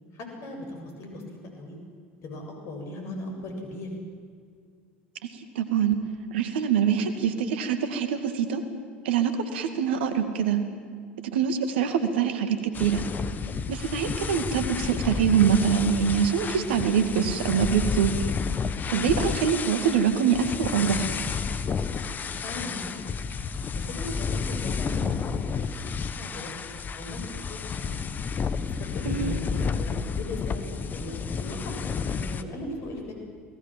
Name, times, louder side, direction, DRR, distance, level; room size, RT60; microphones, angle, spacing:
voice 1, 0.1-1.2 1.5-1.8 2.2-3.9 18.9-19.1 22.4-23.1 23.8-28.0 28.8-33.1, left 2 dB, 50° left, 3 dB, 7.2 m, -38 dB
voice 2, 5.6-6.0 6.3-8.6 9.0-10.6 11.2-13.0 13.7-18.1 18.9-21.1 29.1-29.4, right 7 dB, 70° right, 8 dB, 2.2 m, -24 dB
sound 1, 12.7-32.4, left 5 dB, 30° left, 1.4 m, -31 dB
28.5 x 19.5 x 7.6 m, 2.1 s
figure-of-eight pair, 75°, 6 cm